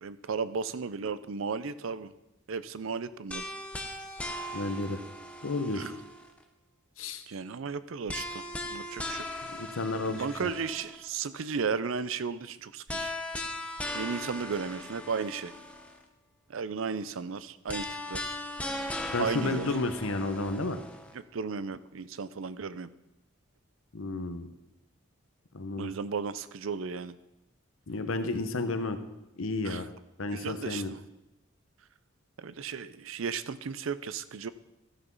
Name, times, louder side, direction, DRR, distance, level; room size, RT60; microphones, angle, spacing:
voice 1, 0.0-2.1 2.5-3.5 5.7-6.0 7.3-8.4 8.7-9.5 10.0-13.1 13.9-15.5 16.5-18.4 19.2-19.7 21.1-22.9 25.8-27.1 29.6-29.9 30.3-31.0 32.4-34.5, right 5 dB, 75° right, 15 dB, 0.5 m, -35 dB
sound 1, 3.3-6.4 8.1-11.1 12.9-16.0 17.7-21.1, left 1 dB, 5° left, 0.9 m, -38 dB
voice 2, 4.5-5.0 5.4-5.9 7.0-7.2 9.5-10.5 19.1-20.8 23.9-24.5 25.5-25.9 27.9-29.0 29.4-29.9 30.2-30.9, left 2 dB, 85° left, 9 dB, 1.0 m, -32 dB
13.5 x 6.1 x 5.4 m, 0.92 s
head